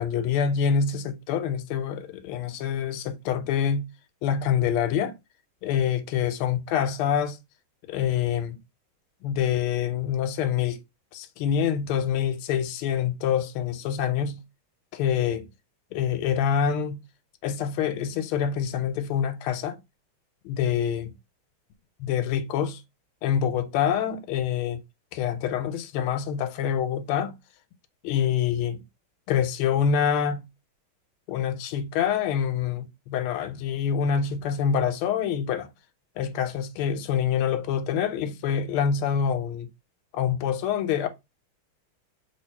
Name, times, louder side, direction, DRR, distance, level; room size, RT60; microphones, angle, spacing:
voice 1, 0.0-3.9 4.2-5.1 5.6-7.4 7.9-8.6 9.2-10.8 11.1-14.4 14.9-15.5 15.9-17.0 17.4-19.8 20.4-21.1 22.0-22.8 23.2-24.8 25.1-27.3 28.0-28.8 29.3-30.4 31.3-35.7 36.2-39.7 40.1-41.1, left 8 dB, 85° left, 1.5 m, -26 dB
3.4 x 2.9 x 4.4 m
omnidirectional pair, 2.3 m